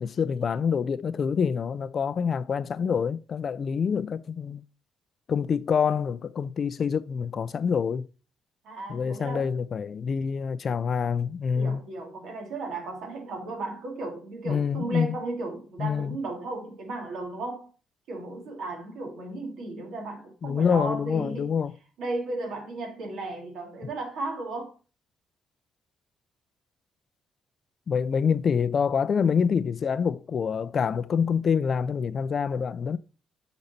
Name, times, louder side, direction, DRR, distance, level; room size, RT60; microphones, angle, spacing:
voice 1, 0.0-4.6 5.3-8.1 8.9-11.8 14.5-15.2 15.8-16.2 20.4-21.7 27.9-33.0, left 6 dB, 50° left, 0.4 m, -26 dB
voice 2, 8.6-9.5 11.5-17.7 18.1-21.5 22.0-24.7, right 2 dB, 75° right, 2.3 m, -35 dB
6.7 x 4.1 x 4.1 m
cardioid pair, 90°, 0 cm